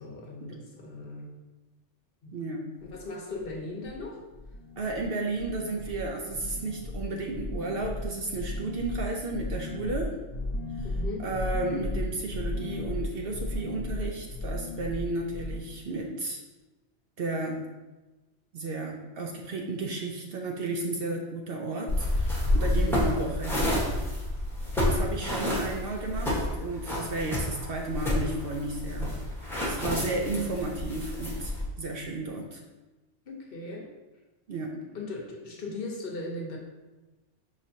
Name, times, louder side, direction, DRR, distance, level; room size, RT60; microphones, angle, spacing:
voice 1, 0.0-1.3 2.2-2.3 2.8-4.2 10.8-11.2 22.6-23.0 33.3-33.9 34.9-36.6, left 2 dB, 55° left, -1 dB, 0.9 m, -38 dB
voice 2, 2.3-2.7 4.8-10.2 10.8-10.9 11.2-16.4 17.2-17.6 18.5-23.9 24.8-29.1 29.4-31.5 31.8-32.6 34.5-34.8, right 2 dB, 65° right, 1 dB, 0.7 m, -33 dB
sound 1, 2.8-3.0 3.3-4.0 4.3-5.0 5.3-15.6, left 1 dB, 25° left, 0.4 m, -35 dB
sound 2, 21.9-31.6, left 1 dB, ahead, 1.0 m, -29 dB
5.5 x 3.2 x 2.7 m, 1.1 s
omnidirectional pair, 1.2 m